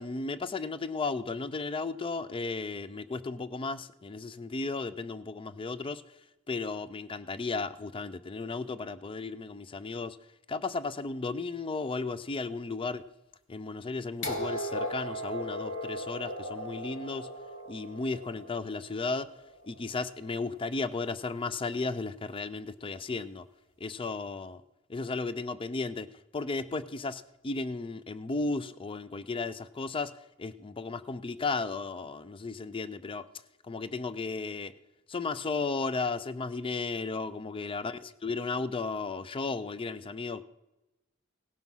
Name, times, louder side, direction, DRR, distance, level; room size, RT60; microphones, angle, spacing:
voice 1, 0.0-6.0 6.5-10.2 10.5-13.0 13.5-17.3 17.7-19.3 19.7-23.5 23.8-24.6 24.9-26.1 26.3-30.1 30.4-33.3 33.6-34.7 35.1-40.4, left 3 dB, 25° left, 0.4 m, -34 dB
sound 1, 14.2-20.1 21.2-21.3, equal, 65° left, 2.1 m, -38 dB
17.5 x 6.0 x 5.5 m
head